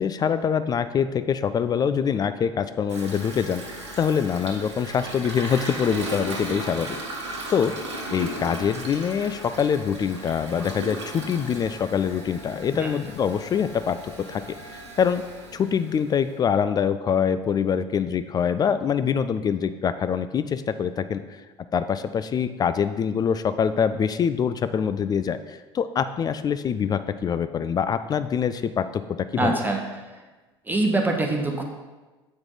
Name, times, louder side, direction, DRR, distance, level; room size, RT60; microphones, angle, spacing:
voice 1, 0.0-3.6 4.0-7.0 7.5-7.7 8.1-14.4 14.7-15.2 15.5-21.2 21.7-29.5, left 7 dB, 25° left, 11 dB, 0.3 m, -24 dB
Toilet flush, 2.9-16.3, right 1 dB, 80° right, 1.0 m, -36 dB
voice 2, 29.4-29.9 30.7-31.6, right 2 dB, 15° right, 2 dB, 1.1 m, -24 dB
7.4 x 4.8 x 3.9 m, 1.2 s
figure-of-eight pair, 65°, 14 cm